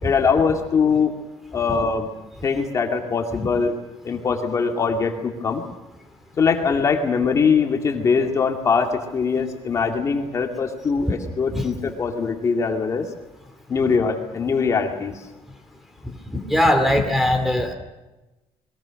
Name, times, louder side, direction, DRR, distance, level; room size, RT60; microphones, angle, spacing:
voice 1, 0.0-1.1 1.5-2.1 2.4-3.8 4.0-5.6 6.4-13.1 13.7-15.1, left 5 dB, 30° left, 3 dB, 2.3 m, -22 dB
voice 2, 16.3-17.7, left 1 dB, ahead, 8 dB, 2.5 m, -20 dB
28.5 x 22.0 x 6.4 m, 1.0 s
cardioid pair, 165°, 10 cm